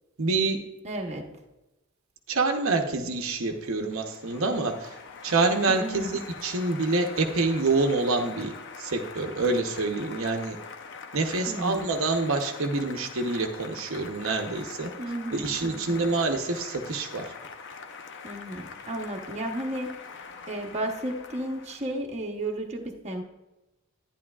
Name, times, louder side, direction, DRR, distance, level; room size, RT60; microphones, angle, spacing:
voice 1, 0.2-0.6 2.3-4.9 5.2-8.5 8.8-10.6 11.1-14.9 15.3-17.3, right 3 dB, 65° right, 4 dB, 0.8 m, -26 dB
voice 2, 0.8-1.3 5.7-6.2 11.5-11.9 15.0-16.1 18.2-20.0 20.5-23.2, right 1 dB, 30° right, 1 dB, 0.9 m, -33 dB
Applause, 3.1-22.0, left 5 dB, 55° left, 0.7 m, -43 dB
11.0 x 10.0 x 2.3 m, 1.0 s
head